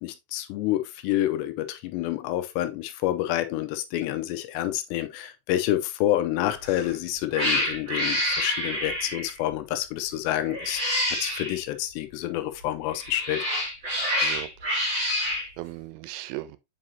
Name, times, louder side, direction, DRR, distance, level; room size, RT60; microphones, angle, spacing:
voice 1, 0.0-10.8 11.2-13.4, left 13 dB, 85° left, 2.8 m, -28 dB
Cat, 6.6-6.9 7.3-9.4 10.5-11.6 12.9-15.5, left 1 dB, 20° right, 2.2 m, -27 dB
voice 2, 14.2-15.0 15.3-16.6, right 17 dB, 90° right, 3.0 m, -39 dB
7.6 x 4.9 x 2.8 m
omnidirectional pair, 5.0 m